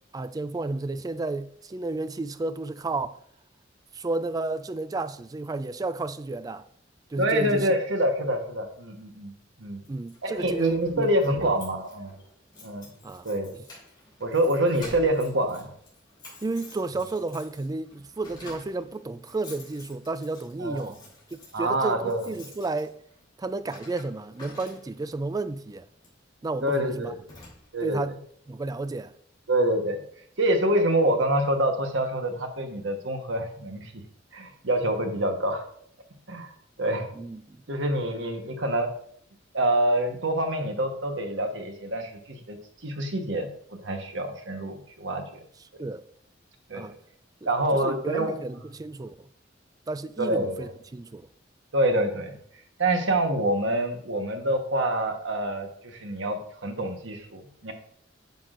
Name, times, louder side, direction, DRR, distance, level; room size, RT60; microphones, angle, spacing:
voice 1, 0.1-3.2 3.9-6.7 7.1-7.8 9.9-11.4 13.0-13.3 16.4-21.0 21.3-22.9 23.4-25.9 26.4-27.1 27.8-28.2 28.5-29.1 37.1-37.6 45.8-46.0 46.7-47.0 47.4-49.3 49.9-51.2, right 3 dB, 20° right, 0.3 m, -32 dB
voice 2, 7.2-9.3 9.6-9.8 10.2-12.1 12.6-12.9 13.2-13.5 14.2-15.7 20.6-20.9 21.5-22.2 26.6-27.1 27.7-28.0 29.5-30.0 30.4-34.0 34.3-35.6 36.3-37.1 37.7-38.9 39.5-42.6 42.8-45.4 46.7-46.9 47.5-48.3 50.2-50.7 51.7-52.4 52.8-57.7, right 1 dB, 75° right, 1.2 m, -26 dB
Keys jangling, 9.8-25.2 26.0-26.2 26.7-26.8 27.0-28.0, left 2 dB, 25° left, 3.1 m, -49 dB
9.3 x 5.9 x 2.5 m
head